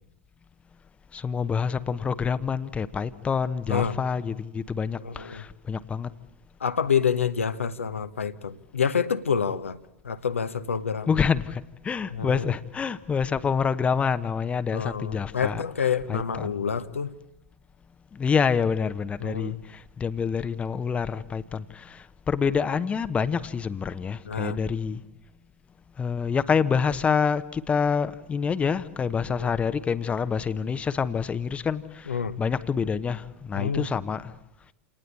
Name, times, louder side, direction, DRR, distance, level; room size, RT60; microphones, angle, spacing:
voice 1, 1.1-6.1 11.1-15.6 16.1-16.5 18.1-25.0 26.0-34.4, left 6 dB, 15° left, 1.0 m, -27 dB
voice 2, 5.0-5.4 6.6-9.8 10.0-11.1 12.1-12.5 14.7-17.1 19.2-19.5 24.2-24.6 29.3-29.5 32.1-32.4 33.5-33.9, left 7 dB, 75° left, 1.1 m, -27 dB
28.0 x 19.0 x 8.5 m
figure-of-eight pair, 90°, 7 cm